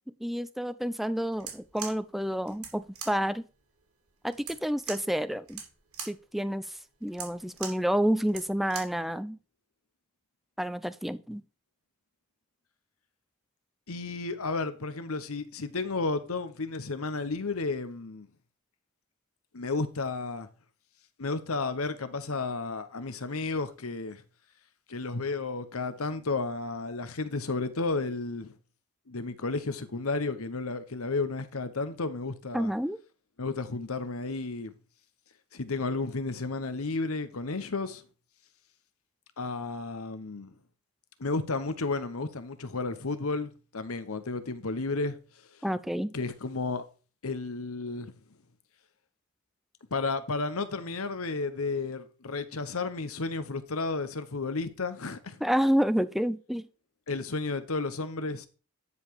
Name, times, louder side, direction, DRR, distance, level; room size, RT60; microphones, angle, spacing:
voice 1, 0.2-3.4 4.2-5.6 6.0-9.4 10.6-11.4 32.5-33.0 45.6-46.1 55.4-56.7, equal, ahead, 0.4 m, -29 dB
sound 1, 1.3-9.0, right 7 dB, 80° right, 3.0 m, -43 dB
voice 2, 13.9-18.3 19.5-20.5 21.2-24.2 24.9-28.5 29.1-32.7 33.4-34.7 35.5-38.0 39.4-40.6 41.2-45.2 46.1-46.8 47.2-48.1 49.9-55.4 57.1-58.5, left 3 dB, 75° left, 1.0 m, -32 dB
9.8 x 5.4 x 4.7 m
head